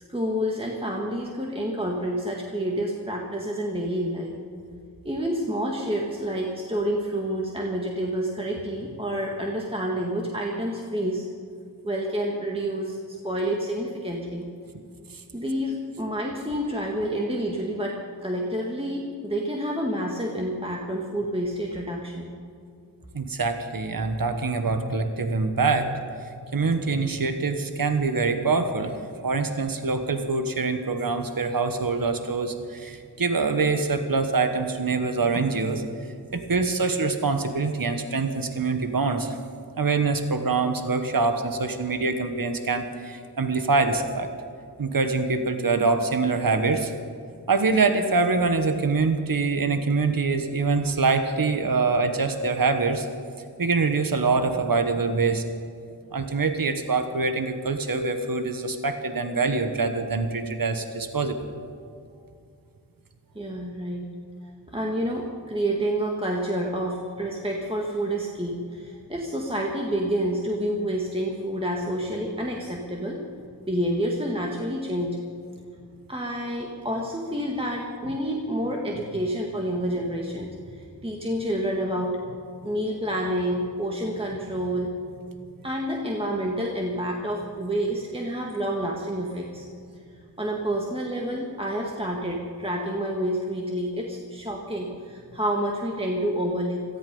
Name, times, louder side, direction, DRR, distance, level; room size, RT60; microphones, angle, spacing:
voice 1, 0.0-4.4 5.0-11.3 11.8-14.5 15.3-22.3 63.4-64.1 64.7-73.2 73.6-75.2 76.1-82.2 82.6-84.9 85.6-89.7 90.4-96.8, equal, 15° right, -1 dB, 1.7 m, -28 dB
voice 2, 23.1-26.2 26.5-28.9 29.2-35.8 36.3-39.4 39.8-44.3 44.8-46.9 47.5-53.1 53.6-55.4 56.1-61.5, right 4 dB, 55° right, 7 dB, 1.3 m, -24 dB
17.5 x 14.0 x 5.5 m, 2.4 s
wide cardioid pair, 65°, 40 cm